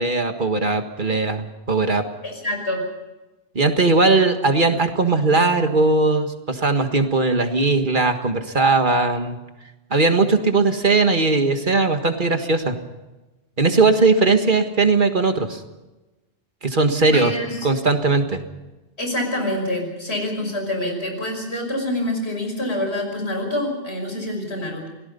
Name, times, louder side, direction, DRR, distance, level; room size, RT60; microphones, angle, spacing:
voice 1, 0.0-2.0 3.6-9.4 9.9-12.8 13.6-15.6 16.6-17.3 17.6-18.4, right 3 dB, 45° right, 6 dB, 1.8 m, -19 dB
voice 2, 2.2-2.9 17.1-17.7 19.0-24.9, left 1 dB, 70° left, 3 dB, 5.9 m, -26 dB
28.0 x 18.5 x 5.5 m, 1.1 s
omnidirectional pair, 1.1 m